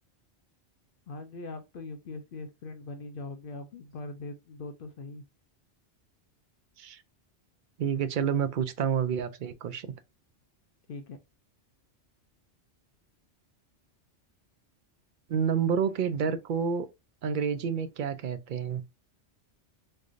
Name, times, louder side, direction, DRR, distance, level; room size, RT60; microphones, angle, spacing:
voice 1, 1.1-5.2 10.9-11.2, left 3 dB, 60° left, 0.7 m, -41 dB
voice 2, 7.8-9.9 15.3-16.9 17.2-18.8, right 7 dB, 55° right, 0.6 m, -29 dB
3.7 x 3.3 x 2.4 m
omnidirectional pair, 1.2 m